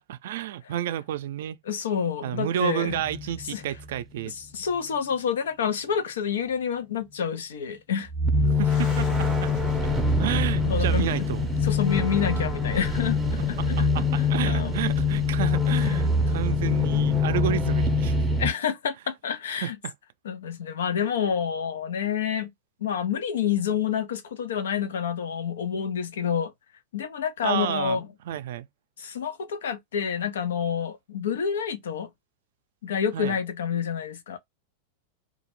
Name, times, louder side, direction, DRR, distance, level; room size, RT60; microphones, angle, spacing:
voice 1, 0.0-1.6 2.2-4.3 8.6-9.5 10.2-11.5 13.6-18.2 19.6-19.9 27.4-28.7 33.1-33.4, right 11 dB, 75° right, 0.4 m, -31 dB
voice 2, 1.7-3.0 3.5-3.6 4.2-8.1 10.7-11.1 11.6-14.8 15.9-16.0 18.4-19.8 20.2-22.5 22.8-26.5 26.9-28.1 29.0-32.1 32.8-34.4, left 7 dB, 90° left, 0.6 m, -28 dB
sound 1, 2.9-4.2 8.1-18.5, left 3 dB, 5° right, 0.5 m, -24 dB
sound 2, 8.4-17.6, left 9 dB, 45° left, 0.6 m, -44 dB
2.3 x 2.1 x 3.0 m
supercardioid pair, 135°, 0 cm